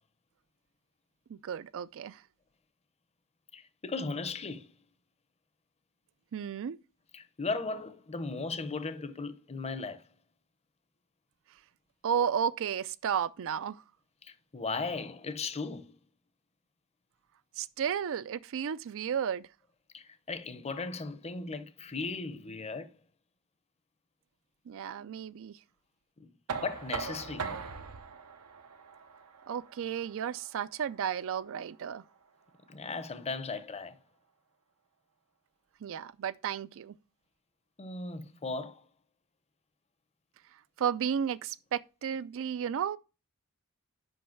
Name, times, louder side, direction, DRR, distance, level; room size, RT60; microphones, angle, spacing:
voice 1, 1.3-2.2 6.3-6.8 12.0-13.8 17.6-19.5 24.7-25.6 29.5-32.0 35.8-36.9 40.8-43.0, right 8 dB, 60° right, 0.4 m, -33 dB
voice 2, 3.5-4.7 7.1-10.1 14.2-16.0 19.9-22.9 26.2-27.6 32.7-34.0 37.8-38.8 42.1-42.6, left 3 dB, 30° left, 0.6 m, -37 dB
Knock, 26.5-32.3, right 5 dB, 85° right, 0.8 m, -41 dB
5.4 x 5.3 x 5.7 m
head